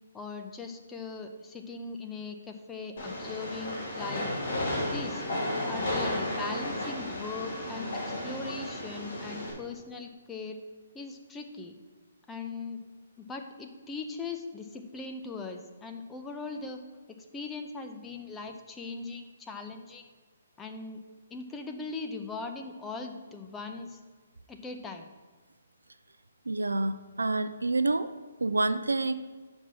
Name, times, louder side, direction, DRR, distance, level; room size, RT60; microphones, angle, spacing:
voice 1, 0.1-4.3 4.9-5.2 5.6-10.6 10.9-11.8 12.3-12.8 13.2-16.8 17.2-20.1 20.6-21.0 21.3-24.0 24.5-25.1, left 4 dB, 10° left, 4 dB, 0.6 m, -40 dB
Train, 3.0-9.5, left 1 dB, 55° left, 2.4 m, -33 dB
voice 2, 26.5-28.1 28.4-29.1, right 2 dB, 85° right, 12 dB, 0.4 m, -28 dB
5.9 x 5.3 x 6.1 m, 1.4 s
figure-of-eight pair, 135°, 0 cm